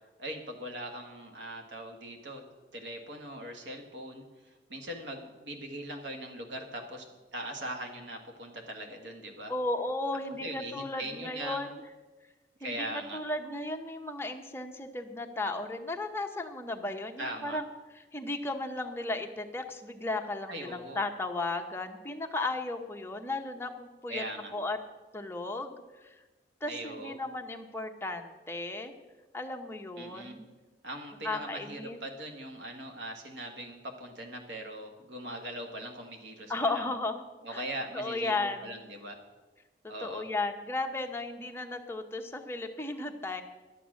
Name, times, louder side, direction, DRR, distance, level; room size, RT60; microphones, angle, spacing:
voice 1, 0.2-2.4 2.7-7.1 7.3-9.5 10.4-11.7 12.6-13.2 17.2-17.6 20.5-21.0 24.1-24.5 26.7-27.1 30.0-30.4 30.8-36.9 37.4-39.2 39.9-40.2, right 1 dB, 80° right, 4 dB, 1.7 m, -40 dB
voice 2, 9.5-11.8 12.6-17.7 18.1-24.2 24.5-24.8 25.1-26.1 26.6-28.9 29.3-30.5 31.2-32.0 36.5-37.2 37.5-37.6 37.9-38.8 39.8-43.4, left 2 dB, 15° left, 3 dB, 0.9 m, -35 dB
11.5 x 8.7 x 6.3 m, 1.2 s
head